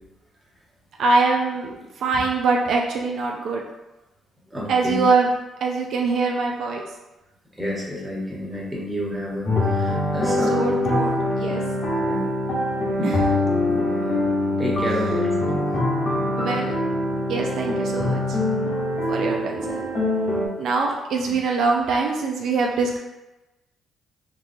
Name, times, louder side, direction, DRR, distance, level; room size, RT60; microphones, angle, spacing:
voice 1, 1.0-3.6 4.7-5.3 5.6-6.8 10.4-11.6 13.0-13.3 14.9-15.1 16.4-16.7 17.3-18.4 19.1-19.9 20.6-23.0, right 4 dB, 70° right, 0 dB, 0.4 m, -23 dB
voice 2, 4.5-5.0 7.6-10.8 12.0-12.2 13.0-13.1 13.7-13.8 14.6-15.6, left 1 dB, 5° right, -5 dB, 1.1 m, -29 dB
sound 1, 9.5-20.5, left 1 dB, 45° left, 0.9 m, -23 dB
4.0 x 2.3 x 2.6 m, 1.0 s
cardioid pair, 90°, 0 cm